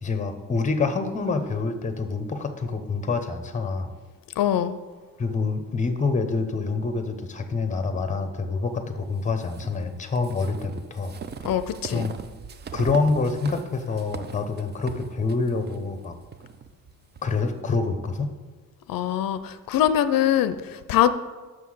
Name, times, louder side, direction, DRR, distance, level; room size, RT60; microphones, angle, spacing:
voice 1, 0.0-3.9 5.2-11.1 11.9-12.1 12.7-16.1 17.2-18.3, left 4 dB, 20° left, 8 dB, 0.7 m, -26 dB
voice 2, 4.4-4.8 11.4-12.1 18.9-21.1, left 11 dB, 80° left, 12 dB, 0.5 m, -23 dB
sound 1, 9.4-17.3, right 6 dB, 30° right, 0.4 m, -40 dB
6.4 x 5.6 x 6.3 m, 1.4 s
wide cardioid pair, 155°, 34 cm